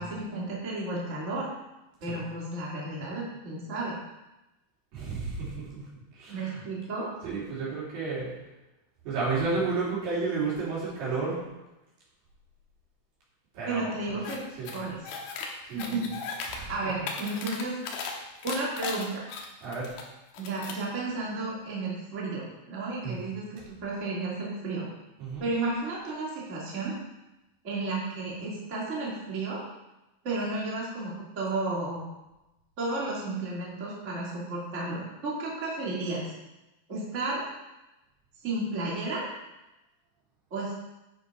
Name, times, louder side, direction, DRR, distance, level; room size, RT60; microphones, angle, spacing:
voice 1, 0.0-1.5 2.0-3.9 6.3-7.1 13.7-14.5 14.7-15.0 15.7-16.1 16.7-17.8 18.4-19.3 20.4-24.8 25.4-26.9 27.6-29.6 30.2-32.0 32.8-36.2 36.9-37.4 38.4-39.2 40.5-40.8, right 2 dB, 25° right, -5 dB, 1.8 m, -32 dB
voice 2, 4.9-5.9 6.1-6.6 7.2-8.3 9.0-11.4 13.5-14.2 14.6-14.8 15.6-15.9 16.5-17.1 19.6-19.9 23.0-23.2 25.2-25.5, right 4 dB, 70° right, -7 dB, 4.8 m, -32 dB
sound 1, 14.2-14.4 14.7-15.5 15.8-16.6 16.9-18.1 18.4-20.0 20.3-20.8, left 5 dB, 80° left, 2.9 m, -37 dB
10.0 x 6.5 x 4.7 m, 1.0 s
omnidirectional pair, 4.3 m